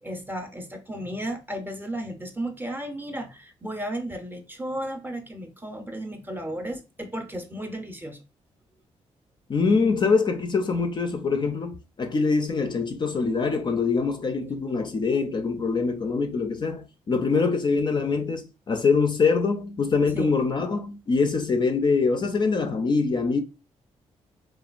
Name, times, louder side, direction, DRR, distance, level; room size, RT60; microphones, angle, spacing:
voice 1, 0.0-8.2 20.1-20.3, right 1 dB, 15° right, 0.6 m, -34 dB
voice 2, 9.5-23.4, left 4 dB, 40° left, 0.4 m, -24 dB
2.9 x 2.2 x 2.3 m
cardioid pair, 85°, 12 cm